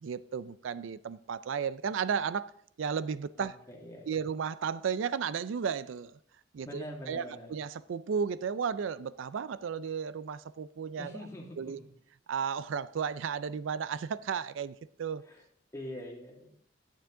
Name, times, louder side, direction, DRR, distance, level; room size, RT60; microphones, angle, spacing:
voice 1, 0.0-2.5 2.8-3.5 4.1-6.1 6.5-7.2 7.5-11.1 11.6-11.8 12.3-15.2, right 6 dB, 80° right, 0.4 m, -34 dB
voice 2, 3.4-4.2 6.6-7.5 11.0-11.9 15.2-15.4 15.7-16.5, left 1 dB, 15° left, 2.1 m, -44 dB
10.5 x 9.1 x 3.7 m
head